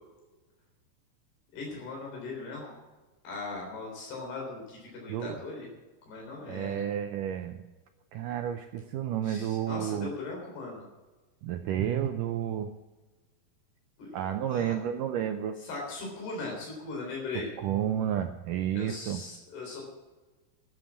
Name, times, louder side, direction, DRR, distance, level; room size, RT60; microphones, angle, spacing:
voice 1, 1.5-2.8 3.2-5.7 6.1-6.9 9.2-10.9 14.0-14.7 15.6-17.5 18.7-19.8, left 3 dB, 90° left, -2 dB, 5.6 m, -39 dB
voice 2, 5.1-5.4 6.5-7.6 8.1-10.1 11.4-12.7 14.1-15.6 17.6-19.2, right 10 dB, 80° right, 7 dB, 1.9 m, -31 dB
15.0 x 7.8 x 7.2 m, 1.2 s
omnidirectional pair, 4.5 m